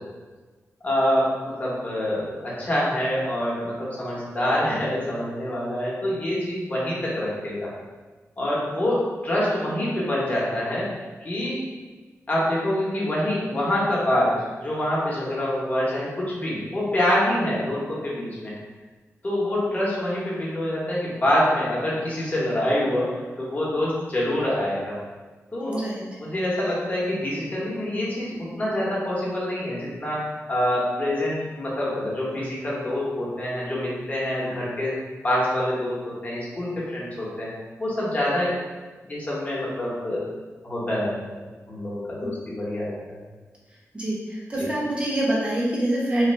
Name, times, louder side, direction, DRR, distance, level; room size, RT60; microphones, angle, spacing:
voice 1, 0.8-7.7 8.4-10.9 11.2-11.6 12.3-18.5 19.2-24.9 25.5-25.8 26.2-34.9 35.2-37.5 37.8-38.5 39.1-40.2 40.6-41.4 41.7-43.1 44.6-44.7, left 1 dB, 30° left, -6 dB, 1.0 m, -26 dB
voice 2, 25.6-26.0 42.2-42.3 43.9-46.3, right 1 dB, 20° right, -5 dB, 0.8 m, -25 dB
3.2 x 2.2 x 3.2 m, 1.3 s
wide cardioid pair, 110°, 5 cm